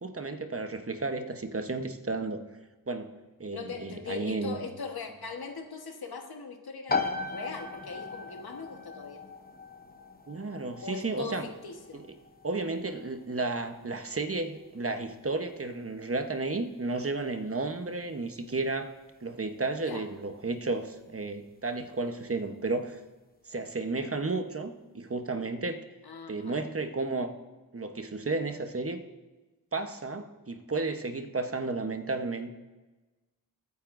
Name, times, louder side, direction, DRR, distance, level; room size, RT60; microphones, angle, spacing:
voice 1, 0.0-2.4 2.9-3.1 3.4-4.6 10.3-11.5 11.9-12.0 12.4-18.9 19.2-23.0 23.5-25.8 26.3-27.3 27.7-29.0 29.7-32.5, right 3 dB, 35° right, 7 dB, 1.0 m, -33 dB
voice 2, 3.5-9.2 10.8-12.0 19.8-20.1 26.0-26.6, left 5 dB, 75° left, 4 dB, 1.3 m, -40 dB
sound 1, 6.9-21.4, left 4 dB, 25° left, 1.0 m, -40 dB
21.5 x 9.5 x 2.6 m, 1.2 s
wide cardioid pair, 60°, 38 cm